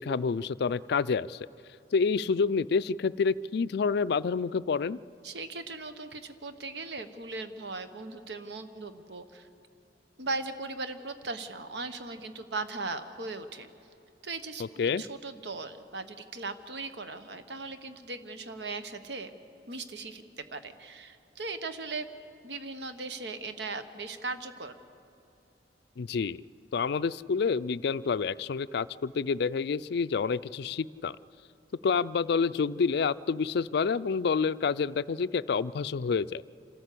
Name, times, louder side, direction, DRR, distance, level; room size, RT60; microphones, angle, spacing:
voice 1, 0.0-1.5 1.9-5.0 14.8-15.0 26.0-26.4 26.7-31.2 31.8-36.4, left 5 dB, 65° left, 16 dB, 0.4 m, -28 dB
voice 2, 5.2-9.5 10.2-13.7 14.2-19.3 19.7-22.1 22.4-24.8, right 3 dB, 70° right, 9 dB, 1.1 m, -38 dB
27.5 x 13.5 x 8.4 m, 2.7 s
head